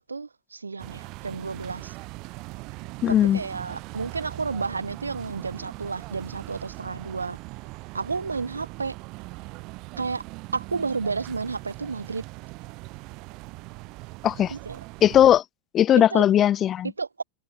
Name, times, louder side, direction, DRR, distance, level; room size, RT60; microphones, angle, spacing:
voice 1, 0.0-1.9 3.3-7.4 7.9-8.9 10.0-10.2 10.5-12.2 14.5-14.8 16.1-16.2 16.8-17.2, right 4 dB, 75° right, 1.6 m, -31 dB
sound 1, 0.8-15.4, right 24 dB, 40° right, 2.2 m, -40 dB
voice 2, 3.0-3.4 14.2-14.5 15.0-15.4 15.7-16.9, left 11 dB, 30° left, 0.3 m, -18 dB
figure-of-eight pair, 90°, 0 cm